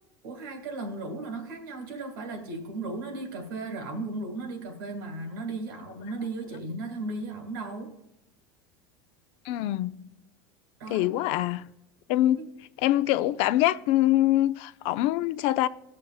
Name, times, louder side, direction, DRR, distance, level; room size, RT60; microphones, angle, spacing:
voice 1, 0.2-7.9 10.8-11.1 12.4-12.5, right 2 dB, 90° right, 1.8 m, -36 dB
voice 2, 9.4-9.9 10.9-11.7 12.1-12.4 12.8-15.7, left 14 dB, 60° left, 0.4 m, -24 dB
19.0 x 6.4 x 2.3 m
supercardioid pair, 120°, 11 cm